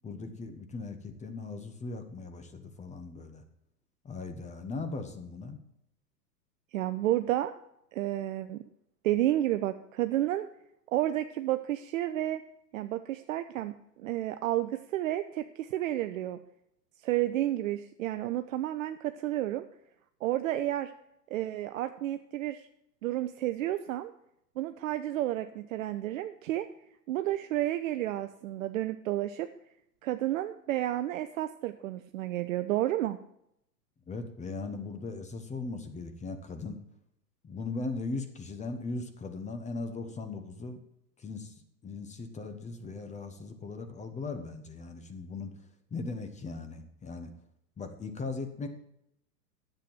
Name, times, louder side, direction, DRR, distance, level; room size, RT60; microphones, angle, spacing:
voice 1, 0.0-3.4 4.0-5.6 34.1-36.8 37.4-40.8 41.2-41.5 41.8-45.5 45.9-47.3 47.8-48.7, left 3 dB, 15° left, 7 dB, 1.2 m, -38 dB
voice 2, 6.7-7.5 7.9-8.6 9.0-10.5 10.9-12.4 12.7-16.4 17.0-19.6 20.2-20.9 21.3-22.6 23.0-24.1 24.6-26.7 27.1-29.5 30.0-33.2, right 14 dB, 55° right, 9 dB, 0.7 m, -31 dB
10.0 x 7.8 x 7.4 m, 0.77 s
hypercardioid pair, 105°, 49 cm